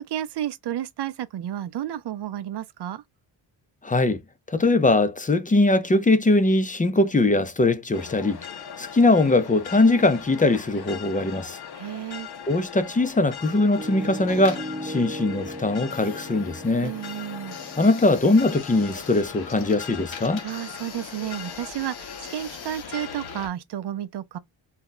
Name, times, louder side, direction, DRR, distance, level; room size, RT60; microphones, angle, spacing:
voice 1, 0.0-3.0 11.7-12.3 16.8-17.6 20.4-24.4, right 11 dB, 60° right, 0.5 m, -32 dB
voice 2, 3.8-4.2 4.5-8.4 8.8-11.6 12.5-16.9 17.8-20.4, left 2 dB, 20° left, 0.5 m, -21 dB
sound 1, 7.9-23.5, left 8 dB, 55° left, 0.7 m, -40 dB
Piano, 13.8-21.6, equal, 15° right, 1.0 m, -39 dB
sound 2, 14.2-23.5, left 6 dB, 80° left, 1.0 m, -44 dB
2.7 x 2.3 x 3.8 m
cardioid pair, 80°, 47 cm